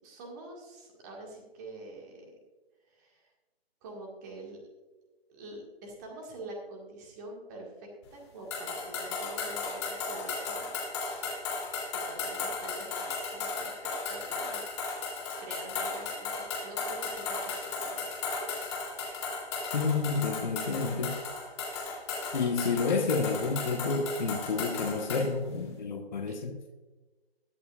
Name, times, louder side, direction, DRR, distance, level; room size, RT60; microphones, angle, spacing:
voice 1, 0.0-2.3 2.9-3.3 3.8-4.6 5.3-10.7 11.9-14.7 14.9-18.1 18.4-19.2 22.4-22.5 26.3-26.4, right 2 dB, 15° right, 0 dB, 1.8 m, -46 dB
sound 1, 8.5-25.3, left 4 dB, 25° left, 3.0 m, -35 dB
voice 2, 19.7-21.2 22.3-26.6, left 4 dB, 45° left, 3 dB, 1.4 m, -30 dB
22.0 x 7.7 x 2.4 m, 1.2 s
figure-of-eight pair, 155°, 31 cm